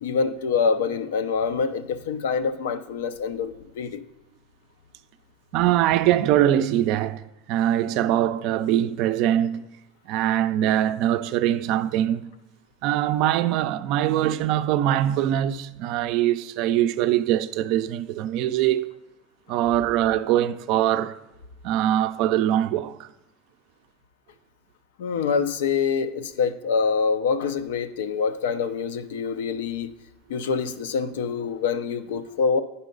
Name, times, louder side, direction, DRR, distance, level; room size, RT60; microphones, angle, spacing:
voice 1, 0.0-4.0 25.0-29.9 30.3-32.6, left 5 dB, 90° left, 0.5 m, -25 dB
voice 2, 5.5-7.2 7.5-9.6 10.1-12.3 12.8-18.9 19.5-21.2 21.6-23.1, right 12 dB, 55° right, 0.3 m, -22 dB
9.0 x 5.5 x 3.9 m
supercardioid pair, 145°, 0 cm